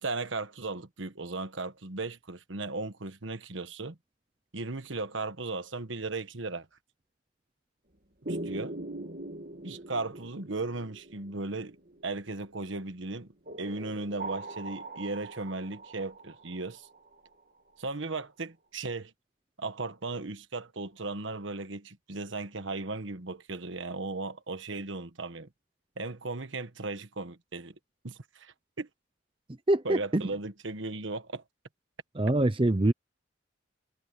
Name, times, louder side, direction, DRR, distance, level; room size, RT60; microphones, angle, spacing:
voice 1, 0.0-4.0 4.5-6.7 8.3-8.7 9.6-11.8 12.0-16.9 17.8-19.1 19.6-25.5 26.0-27.7 28.0-28.9 29.8-31.4, right 3 dB, 75° right, 1.4 m, -36 dB
sound 1, 8.3-12.5 13.5-17.3, right 2 dB, 45° right, 2.4 m, -41 dB
voice 2, 29.7-30.3 32.1-32.9, right 1 dB, 25° right, 0.7 m, -24 dB
head